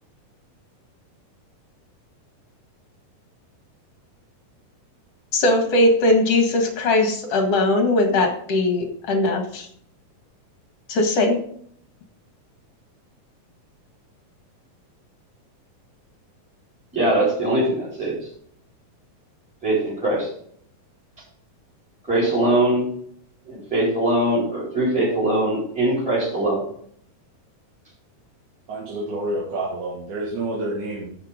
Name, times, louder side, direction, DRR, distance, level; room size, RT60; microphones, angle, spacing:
voice 1, 5.3-9.7 10.9-11.4, left 2 dB, 50° left, 5 dB, 2.4 m, -19 dB
voice 2, 16.9-18.2 19.6-20.3 22.1-22.9 23.5-26.6, right 1 dB, ahead, -7 dB, 3.8 m, -21 dB
voice 3, 28.7-31.1, right 1 dB, 60° right, -3 dB, 3.2 m, -28 dB
10.5 x 6.7 x 5.1 m, 0.64 s
omnidirectional pair, 4.1 m